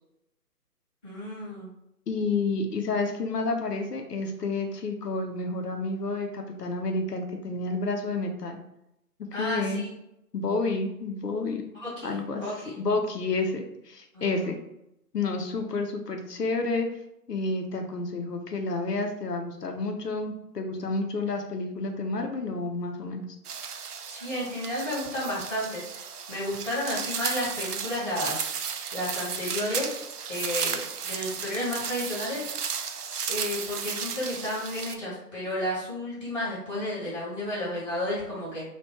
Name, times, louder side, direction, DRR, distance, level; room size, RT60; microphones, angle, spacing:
voice 1, 1.0-1.7 9.3-9.9 11.8-12.8 14.1-14.5 24.1-25.8 26.3-28.4 28.9-29.9 30.3-32.4 33.3-38.6, left 1 dB, 5° left, -18 dB, 0.8 m, -32 dB
voice 2, 2.1-8.6 9.3-9.9 10.3-11.7 12.0-12.4 12.8-14.6 15.1-16.9 17.3-23.2, left 3 dB, 75° left, 4 dB, 0.7 m, -30 dB
sound 1, 23.4-35.0, right 6 dB, 70° right, 0.5 m, -34 dB
2.9 x 2.4 x 3.4 m, 0.82 s
figure-of-eight pair, 150°, 48 cm